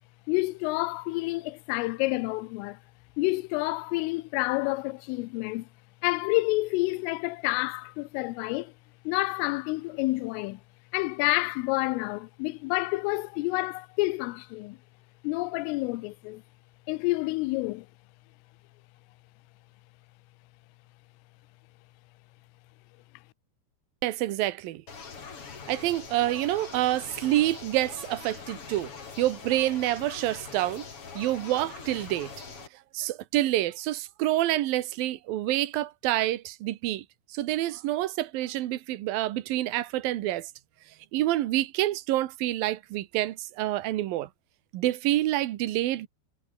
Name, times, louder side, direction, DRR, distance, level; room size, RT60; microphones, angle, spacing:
voice 1, 0.3-2.8 3.2-5.7 6.0-8.7 9.1-10.6 10.9-14.8 15.2-16.4 16.9-17.9, left 22 dB, 90° left, 3.3 m, -29 dB
voice 2, 24.0-24.8 25.7-28.9 29.2-30.9 31.2-32.3 32.9-37.0 37.3-40.5 41.1-44.3 44.7-46.1, right 15 dB, 75° right, 2.1 m, -27 dB
not really an alarm, 24.9-32.7, left 5 dB, 30° left, 3.4 m, -43 dB
omnidirectional pair, 5.8 m